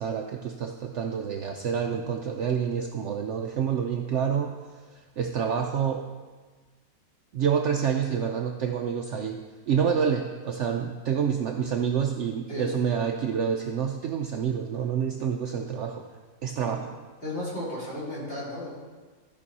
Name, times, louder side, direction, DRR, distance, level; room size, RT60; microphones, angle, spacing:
voice 1, 0.0-4.6 4.9-6.1 7.3-9.4 9.7-16.1 16.4-16.9, right 7 dB, 65° right, 4 dB, 0.7 m, -28 dB
voice 2, 17.2-18.7, left 1 dB, 40° left, -8 dB, 3.2 m, -34 dB
13.5 x 5.3 x 4.1 m, 1.4 s
omnidirectional pair, 1.6 m